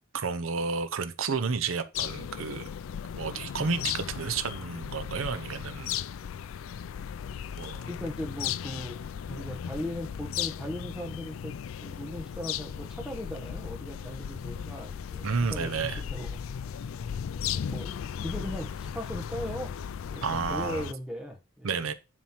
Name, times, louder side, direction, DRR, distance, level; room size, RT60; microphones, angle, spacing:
voice 1, 0.1-2.7 3.1-5.9 7.6-7.9 15.2-16.0 20.2-20.8 21.6-21.9, right 5 dB, 70° right, 0.6 m, -31 dB
sound 1, 1.9-20.9, left 8 dB, 70° left, 0.3 m, -36 dB
voice 2, 7.9-9.0 9.3-16.4 17.7-19.7 20.1-21.8, equal, 5° right, 0.9 m, -38 dB
7.3 x 3.1 x 5.6 m
head